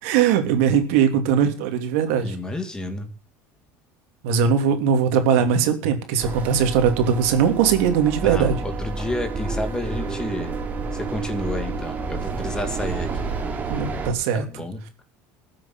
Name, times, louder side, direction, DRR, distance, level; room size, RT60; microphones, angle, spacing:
voice 1, 0.0-2.4 4.2-8.5 13.7-14.4, right 7 dB, 85° right, 6 dB, 3.0 m, -20 dB
voice 2, 2.2-3.1 8.2-10.6 10.9-13.3 14.3-15.0, left 1 dB, 10° left, 8 dB, 2.0 m, -31 dB
sound 1, 6.2-14.1, right 3 dB, 25° right, 2.6 m, -29 dB
14.0 x 7.7 x 8.9 m, 0.40 s
cardioid pair, 150°, 7 cm